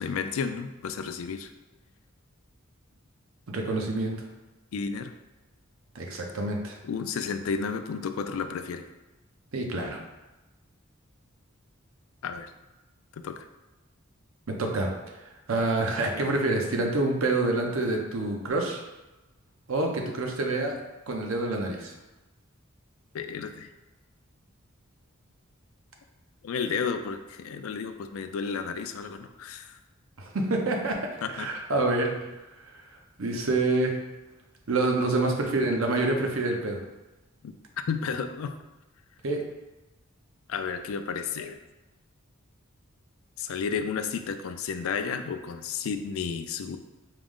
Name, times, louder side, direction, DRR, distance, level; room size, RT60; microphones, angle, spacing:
voice 1, 0.0-1.5 4.7-5.1 6.8-8.9 12.2-12.5 13.1-13.4 23.1-23.7 26.4-29.8 31.2-31.5 37.4-37.5 37.9-38.6 40.5-41.6 43.4-46.8, left 6 dB, 75° left, 8 dB, 0.3 m, -32 dB
voice 2, 3.5-4.1 5.9-6.8 9.5-10.0 14.5-14.9 15.5-18.8 19.7-20.7 21.1-21.9 30.2-31.0 31.3-32.1 33.2-34.0 34.7-36.8 39.2-39.4, right 2 dB, 75° right, 2 dB, 0.7 m, -27 dB
4.8 x 2.1 x 3.6 m, 1.1 s
head